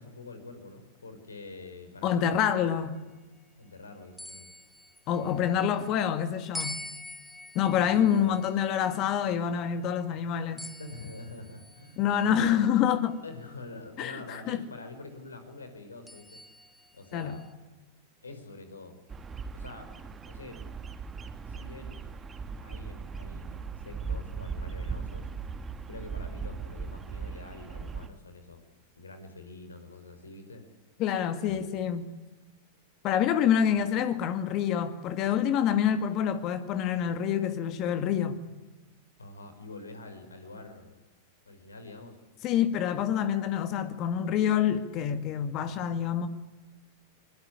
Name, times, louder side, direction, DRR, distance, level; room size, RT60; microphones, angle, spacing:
voice 1, 0.0-2.9 3.6-4.5 5.2-5.6 7.7-8.4 10.8-12.4 13.2-16.4 16.9-17.4 18.2-18.9 19.5-19.9 20.3-20.6 21.5-22.0 22.6-25.3 25.9-28.6 29.0-30.6 31.4-31.8 39.2-41.0 41.5-42.2, left 2 dB, 85° left, 4.5 m, -46 dB
voice 2, 2.0-3.0 5.1-6.8 7.5-10.7 12.0-13.2 14.0-14.6 17.1-17.4 31.0-32.1 33.0-38.4 42.4-46.3, left 9 dB, 45° left, 2.1 m, -27 dB
sound 1, 4.2-5.7 6.5-10.0 10.6-12.3 13.0-13.1 16.1-17.5, left 1 dB, 5° left, 1.1 m, -45 dB
Bird vocalization bird call bird song, 19.1-28.1, right 5 dB, 20° right, 1.8 m, -38 dB
23.5 x 20.5 x 9.8 m
hypercardioid pair, 100°, 0 cm